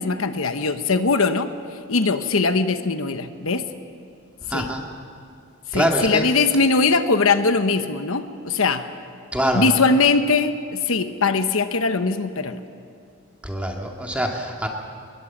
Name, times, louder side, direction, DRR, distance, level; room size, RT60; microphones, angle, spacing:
voice 1, 0.0-1.5 1.9-3.7 4.5-4.7 5.7-8.9 9.5-12.6, left 4 dB, 75° left, 9 dB, 1.1 m, -21 dB
voice 2, 4.4-4.8 5.7-6.3 9.3-9.9 13.4-14.7, equal, 5° right, 1 dB, 2.1 m, -24 dB
23.5 x 21.0 x 7.3 m, 2.4 s
head